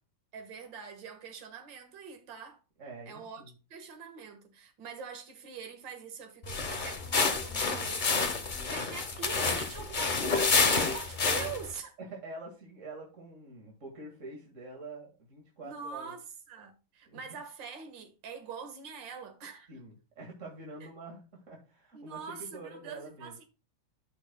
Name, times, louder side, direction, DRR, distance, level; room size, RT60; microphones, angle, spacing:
voice 1, 0.3-2.6 3.1-3.4 3.7-11.9 15.6-19.7 20.8-20.9 21.9-23.5, right 6 dB, 60° right, 2.2 m, -44 dB
voice 2, 2.8-3.5 12.0-16.1 17.1-17.2 19.7-23.4, right 2 dB, 35° right, 2.2 m, -46 dB
sound 1, 6.4-11.7, left 4 dB, 45° left, 0.6 m, -29 dB
13.5 x 6.4 x 2.2 m
omnidirectional pair, 2.4 m